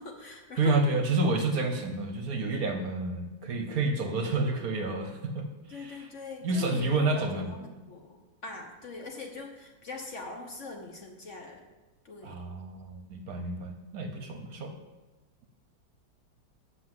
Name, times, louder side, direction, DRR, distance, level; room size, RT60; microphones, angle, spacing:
voice 1, 0.0-0.8 5.7-11.7 12.0-12.4, left 3 dB, 50° left, 3 dB, 1.1 m, -42 dB
voice 2, 0.6-6.0 6.4-7.5 12.2-14.7, right 2 dB, 60° right, 6 dB, 1.1 m, -29 dB
7.7 x 6.2 x 7.7 m, 1.1 s
omnidirectional pair, 2.0 m